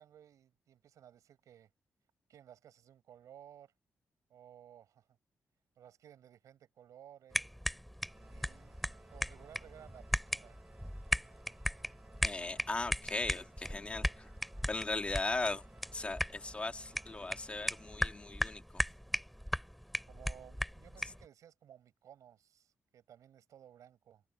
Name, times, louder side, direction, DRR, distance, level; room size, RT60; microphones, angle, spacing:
voice 1, 0.0-1.7 2.3-3.7 4.3-5.1 5.8-7.5 8.3-8.8 9.1-10.9 20.1-24.2, right 10 dB, 90° right, 7.3 m, -57 dB
sound 1, 7.3-21.3, equal, ahead, 3.1 m, -38 dB
Organ, 8.0-18.7, right 4 dB, 30° right, 5.6 m, -63 dB
voice 2, 12.2-14.3 14.7-15.6 15.9-18.8, left 3 dB, 20° left, 2.4 m, -38 dB
wide cardioid pair, 140°, 5 cm